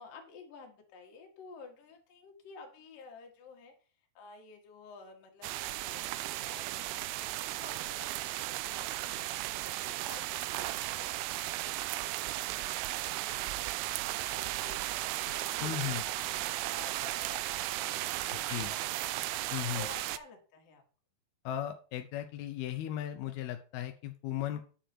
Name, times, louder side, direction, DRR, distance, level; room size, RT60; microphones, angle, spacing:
voice 1, 0.0-3.7 4.1-12.6 12.9-20.8 24.4-24.6, left 4 dB, 60° left, 2 dB, 3.1 m, -53 dB
sound 1, 5.4-20.2, right 16 dB, 85° right, 2.3 m, -35 dB
voice 2, 15.6-16.0 18.5-18.7 19.5-19.9 21.5-24.6, left 12 dB, 80° left, 6 dB, 2.2 m, -36 dB
10.0 x 7.0 x 4.4 m, 0.39 s
omnidirectional pair, 5.0 m